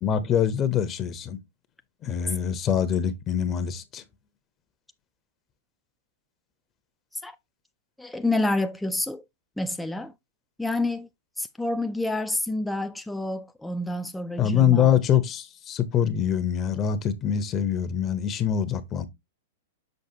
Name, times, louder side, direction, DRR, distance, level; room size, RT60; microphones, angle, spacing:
voice 1, 0.0-1.4 2.0-4.0 14.4-19.1, left 9 dB, 30° left, 0.9 m, -24 dB
voice 2, 8.0-9.2 9.6-10.1 10.6-11.1 11.4-14.9, left 2 dB, 5° left, 0.5 m, -28 dB
6.6 x 5.2 x 2.8 m
hypercardioid pair, 115°, 0 cm